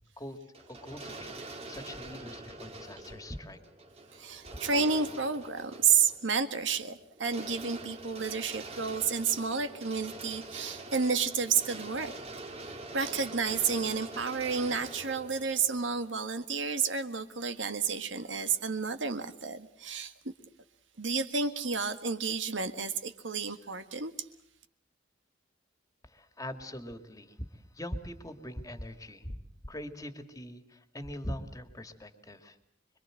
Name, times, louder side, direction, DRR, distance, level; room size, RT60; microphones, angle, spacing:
sound 1, 0.5-16.1, right 2 dB, 30° right, 2.4 m, -45 dB
voice 1, 0.7-3.6 26.0-29.4 29.6-32.6, equal, 20° left, 8 dB, 2.3 m, -42 dB
voice 2, 4.1-12.1 12.6-20.1 21.0-24.1, right 5 dB, 70° right, 9 dB, 1.7 m, -31 dB
26.0 x 23.5 x 7.8 m, 0.67 s
head